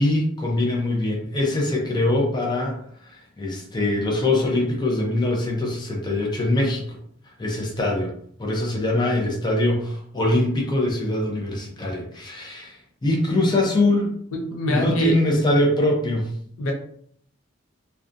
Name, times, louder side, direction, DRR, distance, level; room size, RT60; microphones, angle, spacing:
voice 1, 0.0-2.8 3.0-7.0 7.4-8.1 8.4-14.1 14.7-16.3, left 1 dB, 20° left, -1 dB, 0.5 m, -23 dB
voice 2, 14.3-15.2 16.6-16.7, left 1 dB, 85° left, 2 dB, 0.5 m, -25 dB
2.5 x 2.2 x 2.5 m, 0.62 s
head